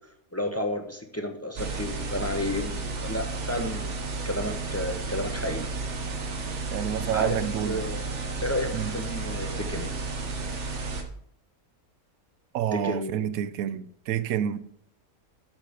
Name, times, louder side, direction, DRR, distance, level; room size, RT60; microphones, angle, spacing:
voice 1, 0.3-2.7 3.0-5.7 7.1-7.4 7.6-8.1 8.4-9.9 12.7-13.3, left 1 dB, 20° left, 0.5 m, -32 dB
sound 1, 1.6-11.0, right 3 dB, 55° right, 1.3 m, -32 dB
voice 2, 6.7-7.8 8.7-8.9 12.5-14.6, right 10 dB, 75° right, 1.0 m, -28 dB
7.4 x 5.0 x 6.6 m
omnidirectional pair, 1.5 m